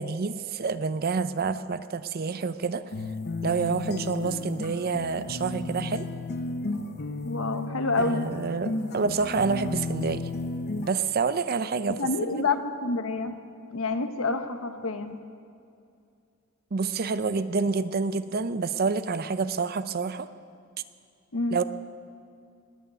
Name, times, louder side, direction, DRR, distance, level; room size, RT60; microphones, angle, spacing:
voice 1, 0.0-2.8 3.4-6.1 8.0-10.3 10.8-12.1 12.3-12.4 16.7-20.3 21.5-21.6, right 4 dB, 45° right, 13 dB, 0.5 m, -28 dB
sound 1, 2.9-10.9, left 3 dB, 50° left, 0.8 m, -33 dB
voice 2, 7.2-8.3 12.0-13.4 13.7-15.2 21.3-21.6, left 3 dB, 75° left, 8 dB, 1.1 m, -28 dB
19.5 x 6.6 x 9.4 m, 2.4 s
head